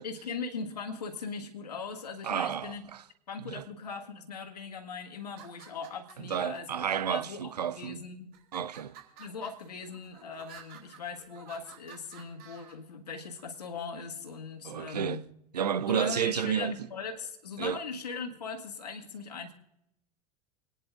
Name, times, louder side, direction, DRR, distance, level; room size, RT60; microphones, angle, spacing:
voice 1, 0.0-2.8 3.3-8.3 9.2-15.2 15.9-19.5, left 5 dB, 80° left, 1.9 m, -40 dB
voice 2, 2.2-3.0 3.4-3.6 6.2-8.0 8.5-8.9 14.6-15.2 15.5-16.7 17.6-17.8, right 8 dB, 85° right, 0.7 m, -31 dB
sound 1, 5.2-6.6 7.3-7.9 8.3-12.7, right 7 dB, 50° right, 3.5 m, -52 dB
29.0 x 10.0 x 2.6 m
hypercardioid pair, 90°, 20 cm